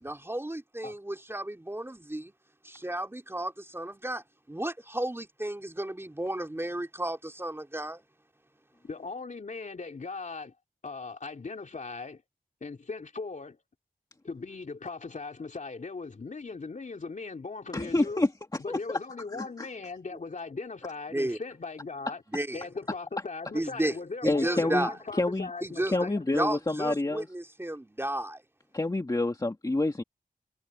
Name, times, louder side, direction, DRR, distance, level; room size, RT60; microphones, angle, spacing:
voice 1, 0.0-2.3 2.6-8.0 21.1-21.4 22.3-22.7 23.5-23.9 24.2-24.9 25.6-25.9 26.3-28.4, right 1 dB, 15° right, 3.0 m, -33 dB
voice 2, 8.8-10.5 10.8-12.2 12.6-13.6 14.2-18.2 18.6-22.2 22.5-26.3, left 4 dB, 55° left, 3.1 m, -39 dB
voice 3, 17.7-18.3 18.7-18.8 19.4-19.7 24.2-25.5 25.9-27.3 28.7-30.0, left 2 dB, 25° left, 2.1 m, -28 dB
wide cardioid pair, 90°, 15 cm